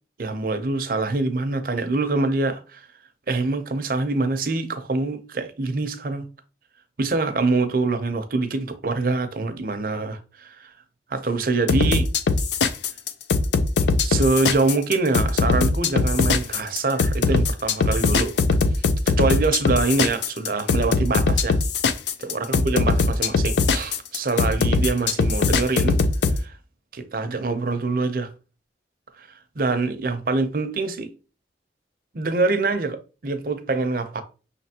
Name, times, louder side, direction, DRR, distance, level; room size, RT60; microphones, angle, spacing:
voice 1, 0.2-2.9 3.3-6.3 7.0-10.7 11.1-12.1 14.0-18.4 19.1-21.6 22.2-26.0 26.4-26.6 26.9-28.3 29.2-29.3 29.6-31.1 32.1-34.2, right 3 dB, 50° right, 0.6 m, -24 dB
sound 1, 11.7-26.4, left 4 dB, 80° left, 0.4 m, -20 dB
5.6 x 3.3 x 2.8 m
head